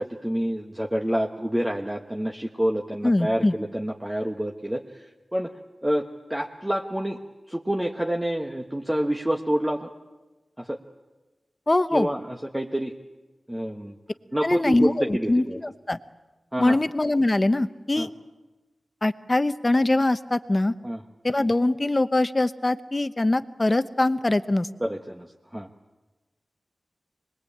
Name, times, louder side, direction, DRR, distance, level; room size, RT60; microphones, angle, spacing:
voice 1, 0.0-5.0 5.3-5.5 5.8-7.2 7.5-9.9 10.6-10.8 11.9-12.9 13.5-14.0 14.3-15.6 16.5-16.8 18.0-18.1 20.8-21.0 24.8-25.7, equal, 10° right, 1 dB, 1.4 m, -28 dB
voice 2, 3.0-3.5 11.7-12.1 14.4-16.0 16.6-18.1 19.0-20.7 21.2-24.7, left 2 dB, 30° left, 12 dB, 1.0 m, -23 dB
24.5 x 21.0 x 8.7 m, 1.1 s
wide cardioid pair, 75°, 0 cm